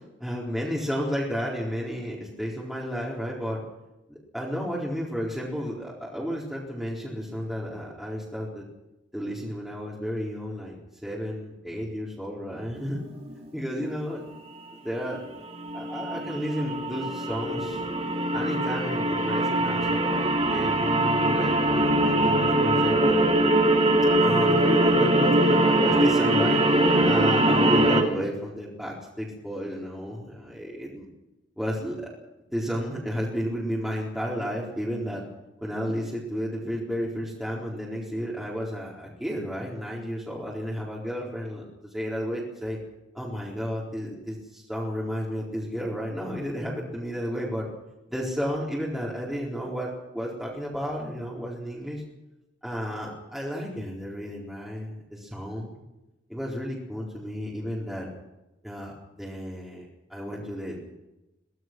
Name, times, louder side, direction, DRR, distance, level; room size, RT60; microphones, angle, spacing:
voice 1, 0.2-3.6 4.3-8.6 9.1-13.0 13.5-14.3 14.8-15.2 15.7-17.8 18.3-20.2 20.5-23.2 24.2-26.6 27.0-31.1 31.6-32.1 32.5-35.2 35.6-41.6 41.9-42.8 43.1-47.7 48.1-52.0 52.6-55.8 56.3-58.1 58.6-60.8, equal, ahead, -6 dB, 4.4 m, -32 dB
sound 1, 12.9-13.3 15.1-15.2 15.5-28.0, right 1 dB, 30° right, 2.7 m, -22 dB
24.0 x 18.0 x 6.3 m, 0.96 s
head